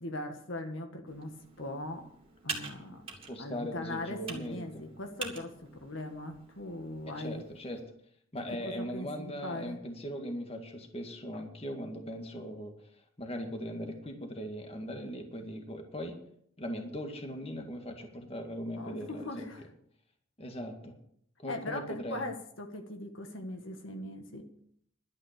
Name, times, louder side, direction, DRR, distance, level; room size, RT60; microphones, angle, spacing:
voice 1, 0.0-2.1 2.4-3.1 3.4-7.4 8.5-9.8 18.8-19.7 21.5-24.5, left 1 dB, 65° left, 5 dB, 1.6 m, -40 dB
Computer keyboard, 1.1-7.8, right 4 dB, 25° right, 2.5 m, -46 dB
voice 2, 3.3-4.8 7.2-7.8 8.3-12.7 13.2-16.2 16.6-19.5 20.4-20.9 21.4-22.2, equal, 30° left, 4 dB, 1.9 m, -39 dB
11.5 x 9.9 x 6.7 m, 0.66 s
head